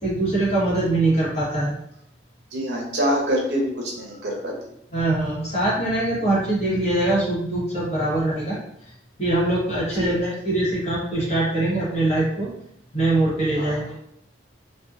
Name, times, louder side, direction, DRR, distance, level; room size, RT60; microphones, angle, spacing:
voice 1, 0.0-1.8 4.9-8.6 9.2-12.5 12.9-14.0, right 2 dB, 35° left, -7 dB, 1.0 m, -23 dB
voice 2, 2.5-4.6 9.9-10.1 13.6-13.8, equal, 65° right, -2 dB, 0.6 m, -25 dB
2.6 x 2.2 x 2.3 m, 0.73 s
head